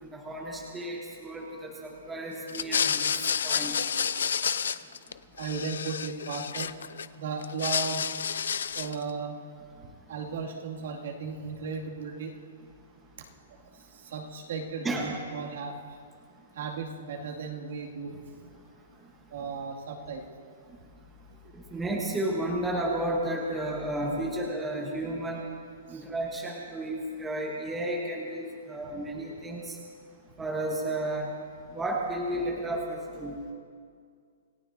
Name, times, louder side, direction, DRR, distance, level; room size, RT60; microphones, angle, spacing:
voice 1, 0.0-3.7 14.8-15.1 21.5-25.4 25.9-29.8 30.4-31.3 31.7-33.3, right 1 dB, 5° right, -2 dB, 1.1 m, -32 dB
sound 1, 2.5-5.1 5.4-7.1 7.4-9.0, left 7 dB, 90° left, 0.6 m, -30 dB
voice 2, 5.4-6.7 7.1-8.1 8.7-9.4 10.1-12.4 13.9-16.0 16.6-18.2 19.3-20.3 21.7-21.9 25.9-26.0, right 5 dB, 55° right, -1 dB, 2.3 m, -36 dB
28.0 x 17.0 x 2.7 m, 2.2 s
hypercardioid pair, 180°, 0 cm